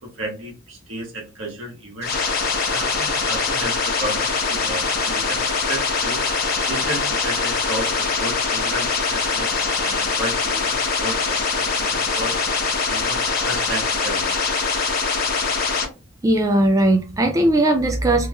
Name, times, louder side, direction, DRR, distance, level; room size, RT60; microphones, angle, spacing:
voice 1, 0.0-2.4 2.7-6.2 6.6-9.5 9.8-13.2 13.4-14.6, right 1 dB, 65° right, 1.2 m, -33 dB
sound 1, 2.0-15.8, left 4 dB, 50° left, 0.8 m, -23 dB
voice 2, 16.2-18.3, right 1 dB, 15° right, 0.3 m, -18 dB
3.1 x 3.0 x 2.2 m
head